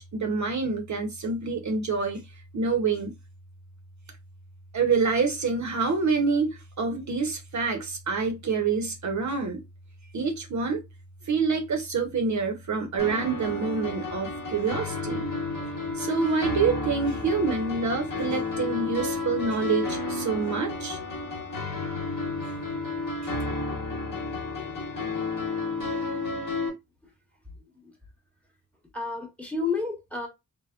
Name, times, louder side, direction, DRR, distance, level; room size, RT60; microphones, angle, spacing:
voice 1, 0.0-2.2 2.5-3.1 4.7-9.6 10.1-10.8 11.3-15.3 16.0-21.0, right 4 dB, 55° right, 0.6 m, -27 dB
sound 1, 13.0-26.7, left 3 dB, 70° left, 1.0 m, -32 dB
voice 2, 27.6-27.9 28.9-30.3, left 4 dB, 5° left, 0.9 m, -31 dB
3.4 x 2.0 x 2.3 m
wide cardioid pair, 100°, 34 cm